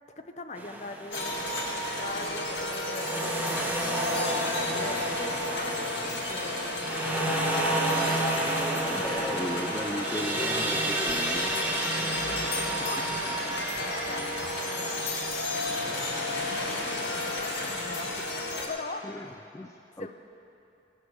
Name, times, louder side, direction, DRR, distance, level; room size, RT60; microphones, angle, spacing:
voice 1, 0.2-3.4 3.7-8.7 9.1-9.3 12.5-16.7 17.1-19.1 20.0-20.1, left 3 dB, 40° left, 6 dB, 0.8 m, -42 dB
sound 1, 0.6-2.0 2.9-15.8, right 1 dB, 10° right, 1.0 m, -32 dB
sound 2, 1.1-18.7, left 1 dB, 70° left, 1.9 m, -32 dB
voice 2, 8.9-11.5 19.0-20.1, left 1 dB, 15° left, 5 dB, 0.3 m, -36 dB
17.0 x 7.8 x 6.2 m, 2.8 s
head